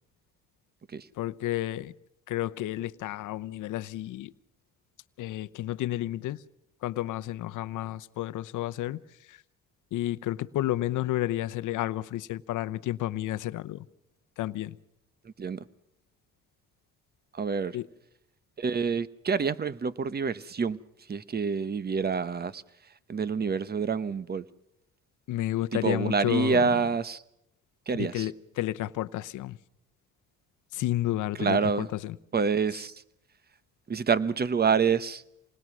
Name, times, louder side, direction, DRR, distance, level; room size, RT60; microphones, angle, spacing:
voice 1, 1.2-1.9 2.3-4.3 5.2-6.4 6.8-9.4 9.9-13.9 14.4-14.8 17.7-17.9 25.3-26.7 28.0-29.6 30.7-32.2, left 15 dB, 85° left, 0.8 m, -31 dB
voice 2, 15.2-15.6 17.3-17.8 18.6-20.8 21.1-22.6 23.1-24.4 25.7-27.2 27.9-28.3 31.4-31.9 32.3-32.9 33.9-35.2, right 5 dB, 30° right, 1.0 m, -27 dB
27.5 x 20.0 x 6.1 m
cardioid pair, 90°, 30 cm